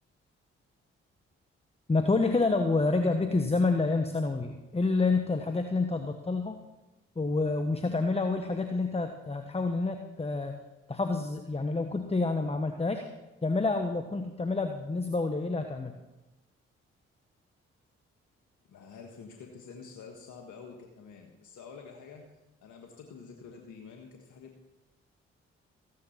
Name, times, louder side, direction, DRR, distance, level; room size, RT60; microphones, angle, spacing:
voice 1, 1.9-6.6 7.1-10.5 10.9-13.0 13.4-15.9, left 3 dB, 20° left, 6 dB, 1.3 m, -28 dB
voice 2, 18.7-24.7, left 5 dB, 75° left, 2 dB, 1.6 m, -48 dB
15.0 x 9.7 x 5.8 m, 1.1 s
hypercardioid pair, 40°, 30 cm